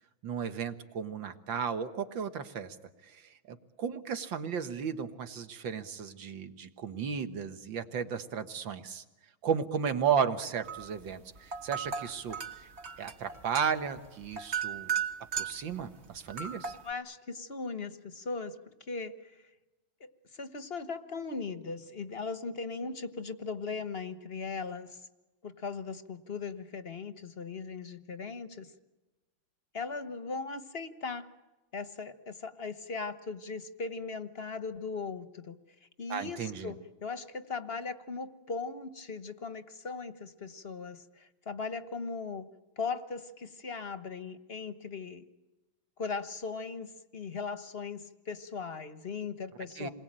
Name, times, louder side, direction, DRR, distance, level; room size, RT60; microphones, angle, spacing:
voice 1, 0.2-2.8 3.0-9.0 9.4-12.7 13.0-14.9 15.4-16.7 36.1-36.7 49.8-49.9, right 7 dB, 65° right, 9 dB, 2.1 m, -34 dB
sound 1, 10.6-11.0 11.4-15.7 16.3-16.9, right 7 dB, 35° right, 1.5 m, -36 dB
voice 2, 16.8-18.6 18.9-19.4 20.0-25.0 25.4-28.7 29.7-31.3 31.7-35.5 36.0-42.5 42.8-45.2 46.0-49.9, left 4 dB, 35° left, 11 dB, 1.1 m, -38 dB
28.5 x 21.5 x 8.9 m, 1.1 s
omnidirectional pair, 2.3 m